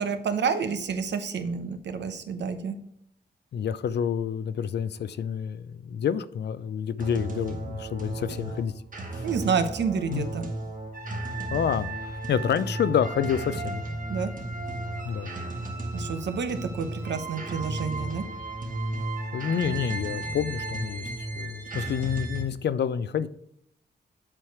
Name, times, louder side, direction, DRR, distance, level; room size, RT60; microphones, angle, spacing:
voice 1, 0.0-2.7 9.2-10.5 14.1-14.3 15.9-18.2, right 6 dB, 85° right, 8 dB, 0.9 m, -29 dB
voice 2, 3.5-8.7 9.1-9.3 10.1-10.3 11.5-13.8 15.0-15.3 19.3-21.1 21.4-23.3, left 8 dB, 75° left, 15 dB, 0.5 m, -28 dB
sound 1, 7.0-22.4, right 2 dB, 50° right, 1.4 m, -34 dB
7.6 x 4.7 x 4.7 m, 0.71 s
cardioid pair, 80°, 18 cm